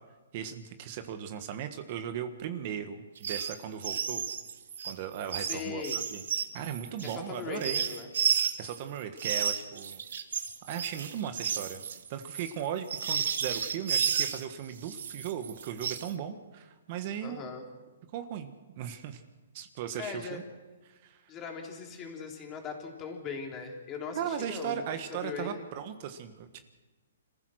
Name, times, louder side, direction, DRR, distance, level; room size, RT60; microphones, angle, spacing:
voice 1, 0.3-4.3 4.8-5.8 6.1-6.2 6.5-7.8 8.6-10.0 10.7-11.8 12.1-17.5 18.1-19.2 19.5-20.4 20.8-21.2 24.1-26.6, right 9 dB, 40° right, 8 dB, 1.4 m, -37 dB
sound 1, 3.2-3.5 3.8-8.8 9.2-14.4 14.8-16.1, right 7 dB, 70° right, 1.6 m, -32 dB
voice 2, 5.4-6.0 7.0-8.1 17.2-17.6 20.0-20.4 21.3-24.8 25.1-25.6, left 5 dB, 20° left, 2 dB, 3.4 m, -39 dB
26.5 x 15.0 x 6.4 m, 1.2 s
hypercardioid pair, 150°, 0 cm